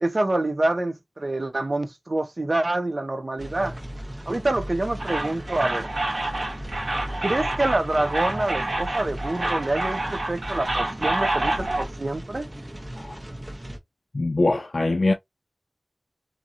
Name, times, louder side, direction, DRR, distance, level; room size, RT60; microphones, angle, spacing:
voice 1, 0.0-3.8 4.3-5.9 7.2-12.5, right 2 dB, 50° right, 0.4 m, -26 dB
sound 1, 3.4-13.8, equal, 30° right, 0.8 m, -37 dB
sound 2, 5.0-11.8, right 2 dB, 75° right, 1.2 m, -28 dB
voice 2, 14.1-15.1, left 2 dB, 65° left, 0.4 m, -23 dB
2.8 x 2.5 x 2.4 m
wide cardioid pair, 65°, 0 cm